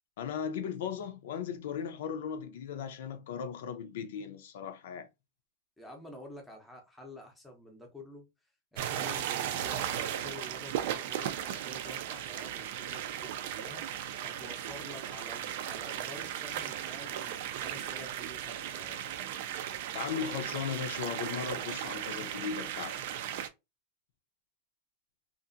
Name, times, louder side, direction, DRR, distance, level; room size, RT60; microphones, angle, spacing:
voice 1, 0.2-5.1 19.9-23.1, left 7 dB, 70° left, 0.5 m, -37 dB
voice 2, 5.8-8.3 8.7-19.0, left 1 dB, 5° left, 0.7 m, -49 dB
sound 1, 8.8-23.5, right 10 dB, 55° right, 0.4 m, -36 dB
2.8 x 2.5 x 2.5 m
supercardioid pair, 170°, 0 cm